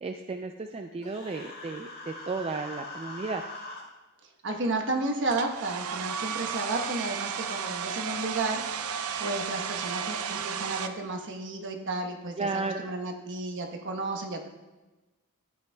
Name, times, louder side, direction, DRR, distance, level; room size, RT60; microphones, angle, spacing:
voice 1, 0.0-3.4 12.4-12.8, right 3 dB, 25° right, 5 dB, 0.3 m, -33 dB
Human voice, 1.0-3.8, left 2 dB, 45° left, 1.8 m, -42 dB
voice 2, 4.4-8.9 9.2-14.5, right 2 dB, 55° right, 3 dB, 1.1 m, -32 dB
Domestic sounds home sounds, 5.3-10.9, right 7 dB, 80° right, 0.6 m, -33 dB
12.5 x 8.7 x 2.3 m, 1.1 s
head